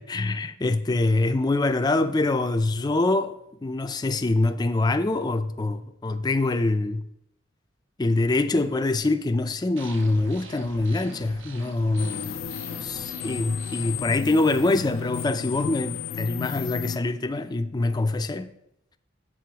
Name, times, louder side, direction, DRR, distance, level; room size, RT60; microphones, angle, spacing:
voice 1, 0.0-3.3 3.6-7.0 8.0-12.4 12.7-18.5, left 2 dB, 20° left, 0.4 m, -24 dB
sound 1, 9.8-14.1, right 1 dB, 70° right, 1.0 m, -44 dB
sound 2, 12.0-17.0, left 8 dB, 85° left, 0.4 m, -33 dB
7.7 x 7.6 x 2.9 m
head